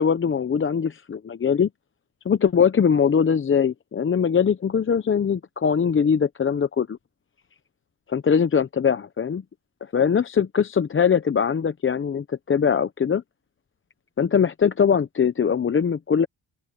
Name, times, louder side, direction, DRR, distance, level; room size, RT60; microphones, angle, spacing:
voice 1, 0.0-1.7 2.2-7.0 8.1-9.4 9.8-13.2 14.2-16.3, left 7 dB, 30° left, 0.7 m, -21 dB
open air
cardioid pair, 100°, 40 cm